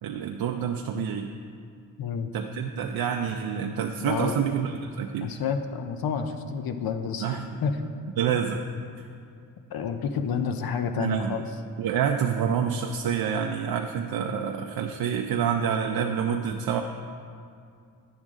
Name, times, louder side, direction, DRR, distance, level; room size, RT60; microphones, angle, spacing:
voice 1, 0.0-1.3 2.3-5.3 7.2-7.6 8.2-8.6 9.0-9.1 11.0-11.4 11.8-16.8, right 8 dB, 90° right, 3 dB, 0.5 m, -27 dB
voice 2, 2.0-2.3 4.0-4.3 5.2-7.8 9.7-11.5, left 6 dB, 90° left, 7 dB, 0.6 m, -29 dB
10.5 x 6.3 x 3.6 m, 2.4 s
wide cardioid pair, 135°, 35 cm